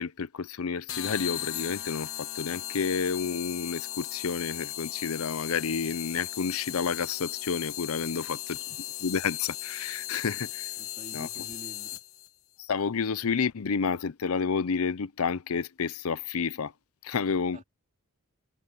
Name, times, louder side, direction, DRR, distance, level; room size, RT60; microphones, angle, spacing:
voice 1, 0.0-8.6 9.0-10.7 11.1-11.3 12.6-16.7 17.0-17.6, left 5 dB, 90° left, 0.6 m, -30 dB
sound 1, 0.9-12.3, left 14 dB, 75° left, 1.3 m, -37 dB
voice 2, 8.0-8.4 10.8-12.0 17.2-17.6, right 1 dB, 35° right, 3.6 m, -48 dB
head